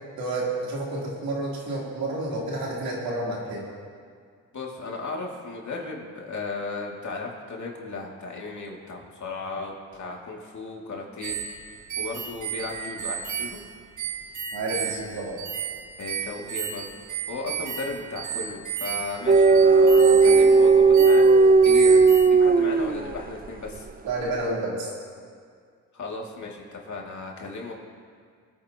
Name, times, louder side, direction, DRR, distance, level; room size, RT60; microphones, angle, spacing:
voice 1, 0.2-3.6 14.5-15.4 24.0-24.9, right 2 dB, 80° right, -5 dB, 3.5 m, -30 dB
voice 2, 4.5-11.4 12.0-13.6 16.0-16.9 17.3-23.9 25.9-27.7, left 3 dB, 55° left, -1 dB, 2.5 m, -35 dB
sound 1, 11.2-22.3, right 8 dB, 55° right, 1.1 m, -34 dB
sound 2, 19.3-23.3, right 4 dB, 25° right, 0.5 m, -16 dB
22.0 x 9.6 x 3.0 m, 2.1 s
cardioid pair, 75°, 36 cm